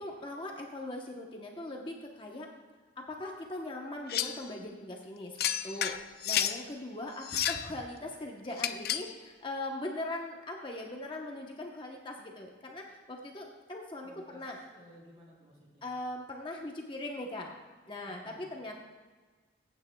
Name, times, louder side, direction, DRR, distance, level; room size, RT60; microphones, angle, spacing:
voice 1, 0.0-2.5 3.0-5.9 6.2-14.6 15.8-17.5 17.9-18.8, left 1 dB, 30° left, 0 dB, 0.9 m, -40 dB
sound 1, 4.1-4.4 5.4-6.6 7.2-7.7 8.6-9.1, left 10 dB, 60° left, 0.5 m, -31 dB
voice 2, 14.0-15.8 18.1-18.5, equal, 35° right, -4 dB, 3.4 m, -55 dB
22.0 x 9.1 x 2.3 m, 1.4 s
head